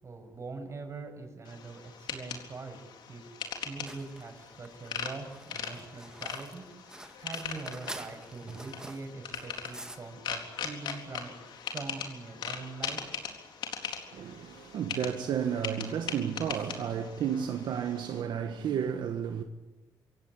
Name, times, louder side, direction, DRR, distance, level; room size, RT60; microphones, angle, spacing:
voice 1, 0.0-6.7 7.2-11.3 11.6-13.0, right 3 dB, 40° right, 6.7 m, -43 dB
sound 1, 1.5-18.2, left 7 dB, 85° left, 4.0 m, -41 dB
sound 2, 3.9-10.0, right 1 dB, 10° right, 2.0 m, -47 dB
voice 2, 14.1-19.4, right 8 dB, 80° right, 1.6 m, -32 dB
26.5 x 17.0 x 9.8 m
cardioid pair, 110°, 8 cm